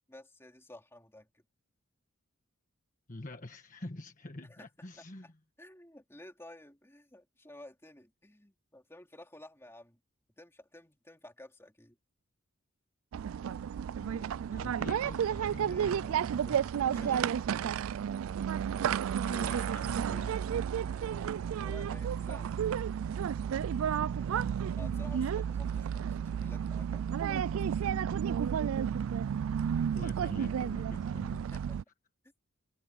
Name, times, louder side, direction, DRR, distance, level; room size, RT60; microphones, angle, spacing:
voice 1, 0.1-1.4 4.4-4.7 5.2-5.3 5.6-10.0 10.4-12.0 15.6-16.2 16.7-17.5 20.9-22.8 24.2-24.5 24.8-28.1 31.5-31.8, left 1 dB, 10° left, 3.3 m, -53 dB
voice 2, 3.1-5.3 14.0-17.2 19.2-20.7 24.9-25.3 29.8-31.4, left 2 dB, 40° left, 1.4 m, -46 dB
sound 1, 13.1-31.8, right 8 dB, 70° right, 0.3 m, -32 dB
head